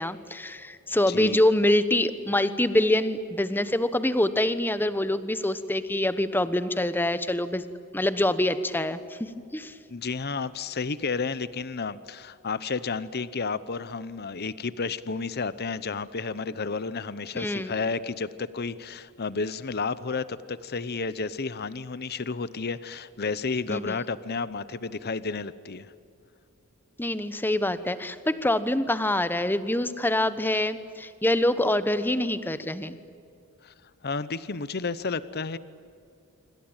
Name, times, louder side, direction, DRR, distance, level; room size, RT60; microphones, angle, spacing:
voice 1, 0.0-7.6 7.9-9.7 17.3-17.7 23.7-23.9 27.0-33.0, left 1 dB, 10° left, 13 dB, 1.1 m, -25 dB
voice 2, 1.1-1.4 9.9-25.9 33.6-33.7 34.0-35.6, left 4 dB, 45° left, 16 dB, 0.8 m, -31 dB
26.5 x 25.0 x 9.0 m, 2.5 s
head